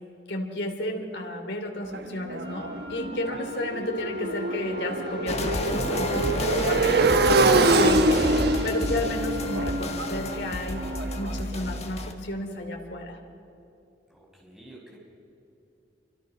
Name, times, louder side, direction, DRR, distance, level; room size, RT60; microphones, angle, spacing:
voice 1, 0.3-7.4 7.8-10.8 11.2-13.2, left 1 dB, 70° left, 4 dB, 3.0 m, -32 dB
Motorcycle, 1.9-11.8, right 2 dB, 65° right, 1.2 m, -25 dB
Wind instrument woodwind instrument, 2.4-11.3, left 6 dB, 80° right, 5.8 m, -44 dB
sound 1, 5.3-12.1, left 1 dB, 40° left, 1.8 m, -31 dB
voice 2, 14.1-15.0, right 1 dB, ahead, -4 dB, 6.0 m, -49 dB
27.0 x 25.0 x 6.1 m, 2.8 s
head